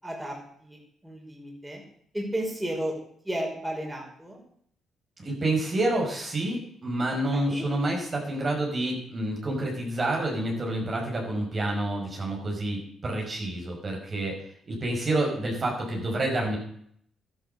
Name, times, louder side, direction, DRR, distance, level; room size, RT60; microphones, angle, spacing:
voice 1, 0.0-1.8 2.1-2.9 3.2-4.4 7.3-7.7, right 1 dB, 10° right, -1 dB, 5.3 m, -33 dB
voice 2, 5.2-14.4 14.7-16.6, right 1 dB, 35° right, 0 dB, 5.2 m, -28 dB
12.5 x 12.0 x 6.7 m, 0.66 s
cardioid pair, 90°, 0 cm